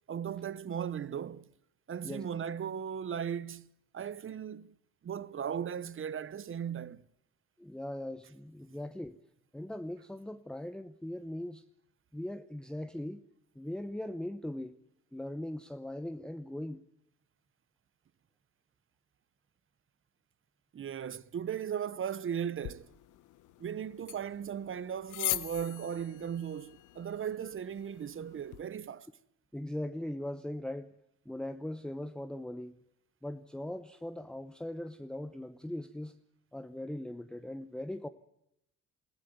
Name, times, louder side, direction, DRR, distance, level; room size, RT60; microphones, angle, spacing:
voice 1, 0.1-1.5 1.9-3.7 3.9-4.7 5.0-7.1 20.7-22.9 23.6-29.1, right 8 dB, 45° right, 0.9 m, -37 dB
voice 2, 7.6-9.2 9.5-11.6 12.1-13.2 13.5-14.8 15.1-16.8 29.5-30.9 31.3-32.8 33.2-36.2 36.5-38.1, left 1 dB, 5° left, 0.8 m, -40 dB
sound 1, 22.6-28.6, left 15 dB, 90° left, 0.8 m, -41 dB
20.5 x 15.5 x 9.3 m
cardioid pair, 90°, 30 cm